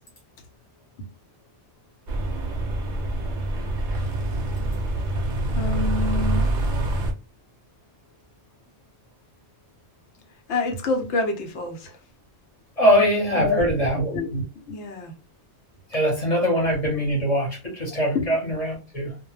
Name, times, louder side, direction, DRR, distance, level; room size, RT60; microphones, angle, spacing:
sound 1, 2.1-7.1, right 1 dB, 60° right, 0.6 m, -25 dB
voice 1, 5.6-6.6 10.5-12.0 13.4-13.6 13.9-15.1 18.1-18.3, left 2 dB, 80° left, 1.0 m, -27 dB
voice 2, 12.8-14.1 15.9-19.2, equal, 35° left, 0.9 m, -22 dB
2.2 x 2.1 x 3.0 m
omnidirectional pair, 1.2 m